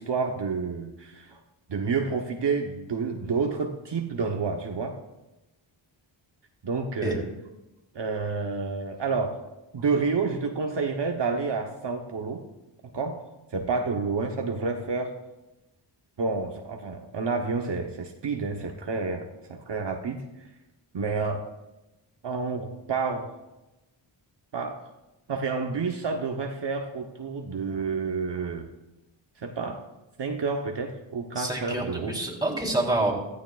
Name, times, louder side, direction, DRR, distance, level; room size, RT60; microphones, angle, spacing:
voice 1, 0.0-1.4 1.7-5.0 6.6-7.2 7.9-9.4 9.7-12.4 12.9-13.2 13.5-15.1 16.2-20.2 20.9-21.4 22.2-23.3 24.5-24.8 25.3-28.7 29.4-29.8 30.2-32.3, right 4 dB, 60° right, 2 dB, 1.1 m, -29 dB
voice 2, 31.3-33.1, right 2 dB, 10° right, 0 dB, 3.4 m, -27 dB
15.5 x 13.5 x 2.4 m, 1.0 s
cardioid pair, 75°, 48 cm